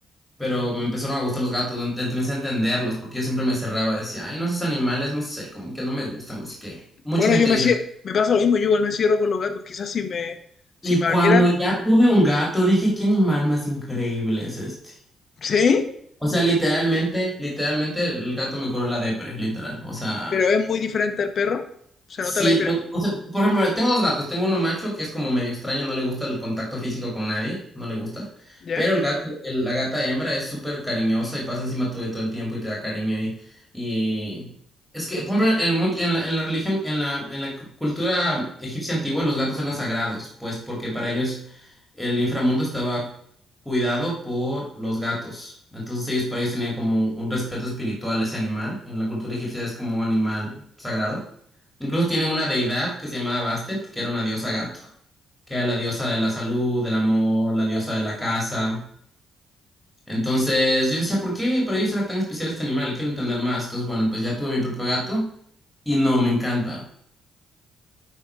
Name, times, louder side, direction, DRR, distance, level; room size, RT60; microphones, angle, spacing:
voice 1, 0.4-7.7 10.8-15.0 16.2-20.4 22.2-33.3 33.7-34.5 34.9-43.1 43.6-51.2 51.8-54.9 55.5-58.8 60.1-65.3 65.9-66.8, equal, 5° left, -4 dB, 2.6 m, -24 dB
voice 2, 7.1-7.8 8.0-10.4 10.9-11.5 15.4-15.9 20.3-21.6 22.1-22.7 28.6-28.9, left 5 dB, 50° left, 8 dB, 0.9 m, -21 dB
10.5 x 3.6 x 4.7 m, 0.67 s
cardioid pair, 90°, 0 cm